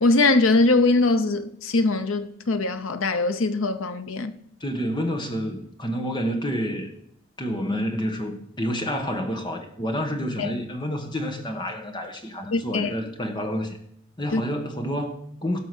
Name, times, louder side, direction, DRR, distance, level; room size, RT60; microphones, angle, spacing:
voice 1, 0.0-4.3 10.4-10.5 12.5-12.9 14.3-14.4, left 3 dB, 85° left, 0.9 m, -21 dB
voice 2, 4.6-6.9 7.4-13.8 14.2-15.6, equal, 20° left, 1.5 m, -29 dB
17.0 x 6.1 x 6.3 m
head